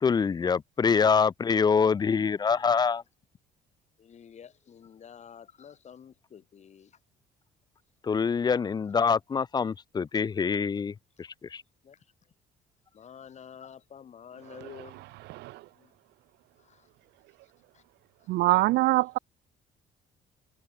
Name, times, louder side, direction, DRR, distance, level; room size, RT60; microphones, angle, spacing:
voice 1, 0.0-3.0 8.0-11.6, left 6 dB, 25° left, 0.5 m, -25 dB
voice 2, 4.0-7.0 11.8-12.1 12.9-15.0 15.7-15.9 16.6-16.9 17.7-17.8, left 8 dB, 40° left, 3.1 m, -49 dB
voice 3, 15.3-15.6 18.3-19.2, right 19 dB, 80° right, 0.6 m, -24 dB
cardioid pair, 110°, 17 cm